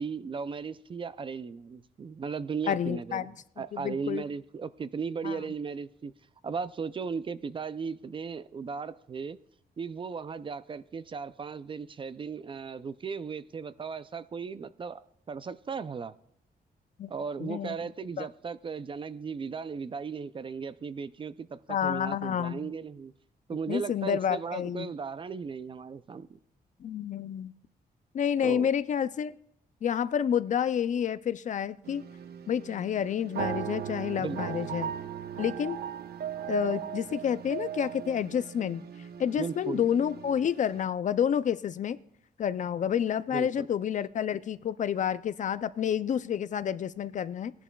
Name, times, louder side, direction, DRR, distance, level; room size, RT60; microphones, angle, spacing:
voice 1, 0.0-6.1 6.4-9.4 9.8-16.2 17.1-23.1 23.5-26.4 28.4-28.7 34.2-34.6 39.4-39.9 43.3-43.7, right 5 dB, 30° right, 0.3 m, -36 dB
voice 2, 2.7-3.3 3.7-4.2 5.2-5.4 17.0-17.1 17.4-17.7 18.2-18.3 21.7-22.7 23.7-24.9 26.8-27.5 28.1-29.3 29.8-32.0 32.5-34.9 35.4-35.8 36.5-38.8 39.2-42.0 42.4-47.5, left 8 dB, 50° left, 0.4 m, -29 dB
sound 1, 31.8-40.8, right 9 dB, 70° right, 0.6 m, -38 dB
18.0 x 11.0 x 2.3 m
wide cardioid pair, 130°, 17 cm